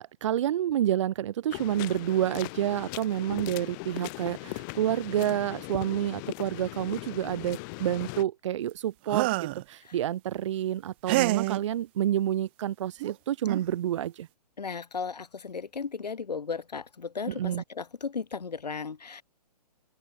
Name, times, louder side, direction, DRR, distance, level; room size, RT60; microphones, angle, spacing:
voice 1, 0.0-14.3 17.3-17.6, right 11 dB, 45° right, 1.7 m, -29 dB
sound 1, 1.5-8.2, left 29 dB, 30° left, 5.3 m, -39 dB
sound 2, 9.1-9.6 11.1-11.6 13.0-13.1 13.5-13.7, right 21 dB, 15° right, 0.3 m, -27 dB
voice 2, 14.6-19.2, left 5 dB, 80° left, 5.6 m, -35 dB
open air
hypercardioid pair, 145°, 21 cm